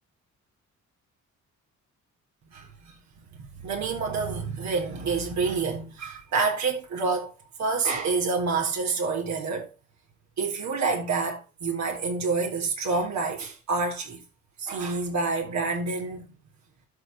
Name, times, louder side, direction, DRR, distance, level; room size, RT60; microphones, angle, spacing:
voice 1, 2.5-7.3 7.6-9.7 10.4-14.2 14.6-16.4, right 4 dB, 65° right, 3.7 m, -28 dB
12.5 x 5.3 x 4.0 m
cardioid pair, 90°, 30 cm